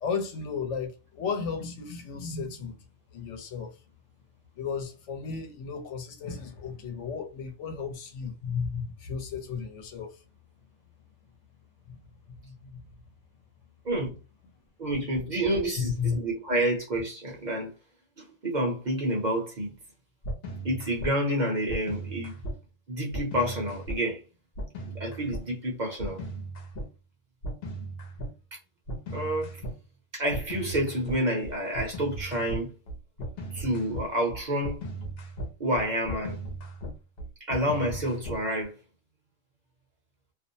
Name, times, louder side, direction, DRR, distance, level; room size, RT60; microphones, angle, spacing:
voice 1, 0.0-2.8 3.1-3.7 4.6-10.1 11.9-12.0 12.4-12.7 16.0-16.2, left 6 dB, 75° left, 1.0 m, -34 dB
voice 2, 13.8-14.2 14.8-17.7 18.2-19.7 20.6-22.5 22.9-24.2 24.9-26.2 28.5-28.6 29.1-29.5 30.1-32.7 33.5-34.8 35.6-36.4 37.5-38.7, right 1 dB, 45° right, 0.7 m, -29 dB
sound 1, 20.2-21.1 21.7-22.6 23.1-24.0 24.6-25.4 26.0-26.9 27.4-28.3 28.9-29.8 30.3-38.6, right 1 dB, 60° left, 0.9 m, -37 dB
2.5 x 2.0 x 2.6 m
omnidirectional pair, 1.3 m